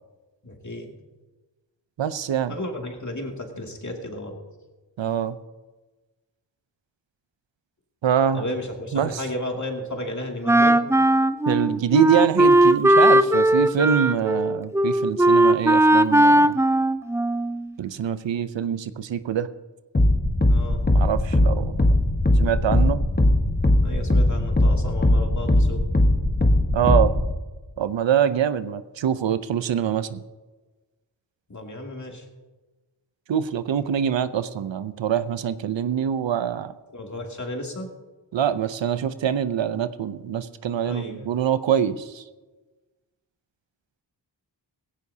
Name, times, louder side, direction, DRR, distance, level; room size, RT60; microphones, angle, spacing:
voice 1, 0.4-0.9 2.5-4.4 8.3-10.8 20.4-20.8 23.8-25.8 31.5-32.2 36.9-37.9 40.8-41.3, left 1 dB, 40° left, 1 dB, 2.5 m, -33 dB
voice 2, 2.0-2.6 5.0-5.4 8.0-8.4 8.9-9.3 11.4-16.6 17.8-19.5 20.9-21.8 22.4-23.0 26.7-27.1 27.8-30.2 33.3-36.7 38.3-42.2, right 8 dB, 85° right, 13 dB, 0.7 m, -24 dB
Wind instrument woodwind instrument, 10.4-17.7, right 1 dB, 5° right, 0.4 m, -18 dB
sound 1, 19.9-27.3, left 1 dB, 25° left, 1.4 m, -20 dB
17.0 x 16.0 x 2.8 m, 1.2 s
wide cardioid pair, 65°, 43 cm